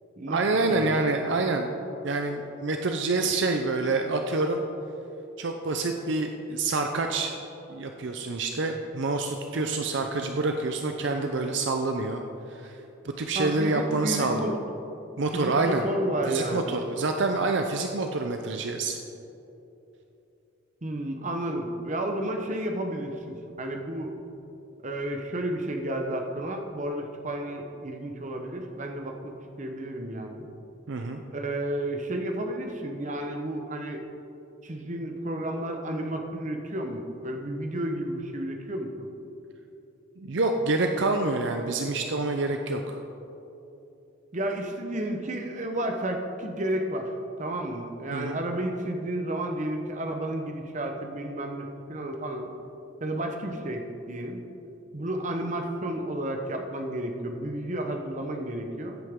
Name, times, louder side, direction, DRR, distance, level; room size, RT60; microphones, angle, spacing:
voice 1, 0.3-1.7 2.0-4.6 5.4-7.3 7.7-12.2 12.5-12.8 13.0-14.5 15.2-15.8 16.3-19.0 30.9-31.2 40.2-43.0 48.1-48.4, right 3 dB, 65° right, 4 dB, 0.5 m, -27 dB
voice 2, 13.3-14.5 15.3-16.7 20.8-24.1 24.8-30.5 31.3-34.0 34.6-38.9 44.3-47.1 47.4-52.5 53.0-54.4 54.9-59.0, right 1 dB, 35° right, 3 dB, 0.9 m, -32 dB
15.0 x 8.4 x 3.7 m, 2.9 s
head